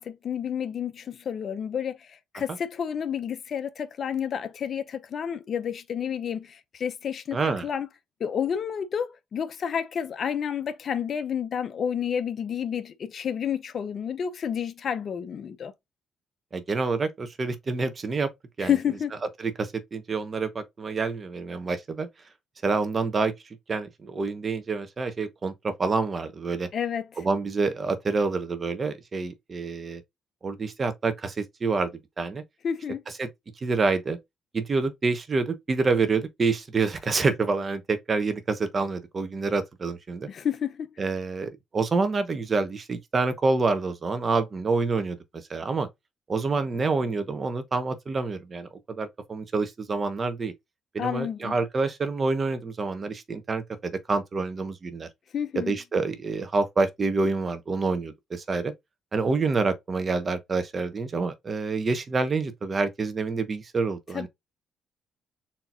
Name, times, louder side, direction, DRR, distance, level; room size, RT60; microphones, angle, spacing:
voice 1, 0.0-7.4 7.6-7.9 8.2-15.7 18.6-19.1 26.7-27.1 32.6-33.0 40.3-40.9 51.0-51.6 55.3-55.7 64.1-64.3, left 8 dB, 55° left, 0.7 m, -30 dB
voice 2, 7.3-7.7 16.5-18.3 18.6-18.7 19.4-22.1 22.6-23.3 23.7-26.7 27.2-30.0 30.4-31.9 32.2-32.4 33.2-33.3 33.6-34.2 34.5-40.3 41.0-45.2 45.5-45.9 46.3-48.7 49.0-50.5 50.9-55.1 55.5-58.7 59.1-64.3, right 4 dB, 35° right, 1.1 m, -27 dB
4.4 x 3.8 x 2.5 m
cardioid pair, 90°, 0 cm